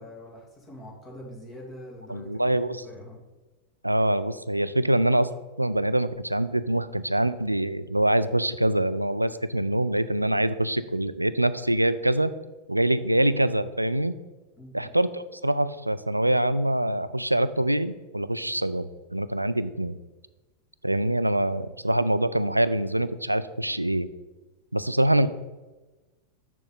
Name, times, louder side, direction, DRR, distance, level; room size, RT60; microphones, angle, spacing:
voice 1, 0.0-3.2 14.6-14.9, left 1 dB, 25° left, -2 dB, 2.5 m, -44 dB
voice 2, 2.1-2.8 3.8-5.3 5.6-12.3 12.7-14.1 14.7-20.0 20.8-24.1 24.7-25.3, right 1 dB, 85° right, 14 dB, 0.3 m, -24 dB
7.0 x 6.8 x 3.9 m, 1.2 s
figure-of-eight pair, 90°, 0 cm